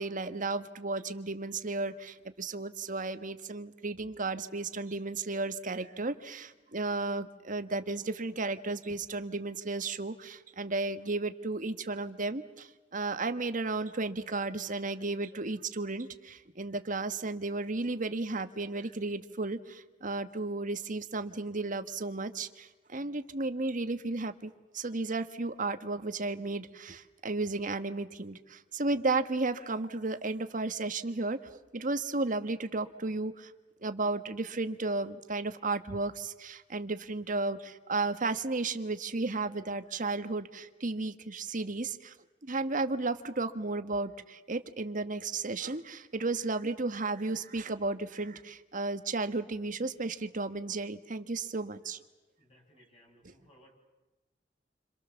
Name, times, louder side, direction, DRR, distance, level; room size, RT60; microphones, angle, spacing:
voice 1, 0.0-31.4 31.7-33.5 33.8-42.1 42.4-52.0 53.2-53.3, right 3 dB, 45° right, 9 dB, 1.5 m, -34 dB
voice 2, 52.4-53.7, equal, 35° left, 0 dB, 7.7 m, -61 dB
29.5 x 26.5 x 7.1 m, 1.2 s
head